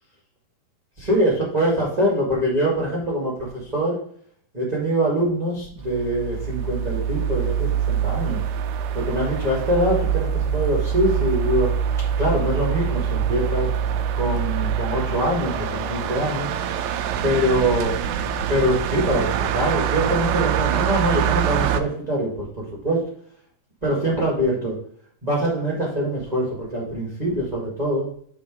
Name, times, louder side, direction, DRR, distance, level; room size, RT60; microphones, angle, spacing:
voice 1, 1.0-4.0 4.5-8.4 8.9-11.7 12.2-13.7 14.1-16.5 17.2-17.9 18.5-23.0 23.8-24.7 25.2-28.1, equal, 20° right, -6 dB, 1.1 m, -23 dB
sound 1, 5.8-21.8, right 8 dB, 90° right, 2.0 m, -24 dB
5.3 x 4.9 x 5.1 m, 0.62 s
omnidirectional pair, 4.6 m